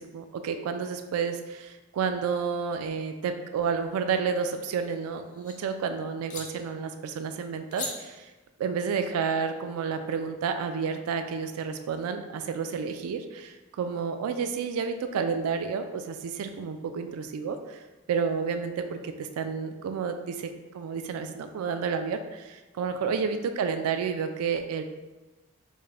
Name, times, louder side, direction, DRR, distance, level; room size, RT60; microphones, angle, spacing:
voice 1, 0.0-8.3 8.6-17.8 18.1-24.8, right 6 dB, 80° right, 9 dB, 0.3 m, -30 dB
sound 1, 4.5-5.6 6.3-6.5 7.7-7.9, left 3 dB, 35° left, 0.5 m, -39 dB
3.5 x 2.1 x 3.3 m, 1.2 s
head